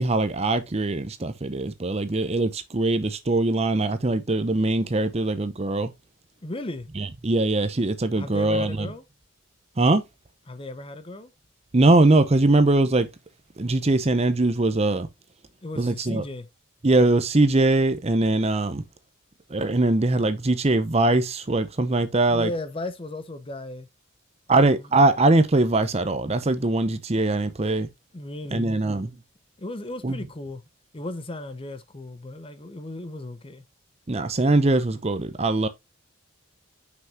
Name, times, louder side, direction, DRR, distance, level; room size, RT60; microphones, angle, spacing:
voice 1, 0.0-5.9 7.0-8.9 9.8-10.0 11.7-13.1 13.6-15.1 15.8-16.2 16.8-18.8 19.5-22.5 24.5-27.9 28.5-29.1 30.0-30.2 34.1-35.7, right 2 dB, 30° right, 0.6 m, -21 dB
voice 2, 6.4-6.9 8.2-9.0 10.5-11.3 15.6-16.5 22.3-23.9 24.5-24.7 28.1-28.7 29.6-30.6 30.9-33.6, left 2 dB, 25° left, 0.7 m, -35 dB
6.0 x 5.8 x 2.8 m
head